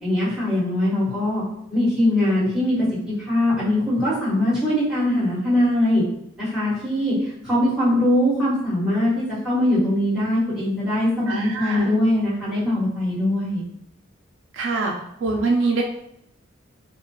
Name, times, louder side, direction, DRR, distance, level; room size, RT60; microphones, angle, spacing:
voice 1, 0.0-1.4 1.7-6.0 6.4-13.6, left 1 dB, 5° right, -10 dB, 1.2 m, -21 dB
voice 2, 11.3-11.9 14.5-14.9 15.2-15.8, right 3 dB, 65° right, 1 dB, 0.3 m, -23 dB
2.3 x 2.2 x 2.9 m, 0.76 s
head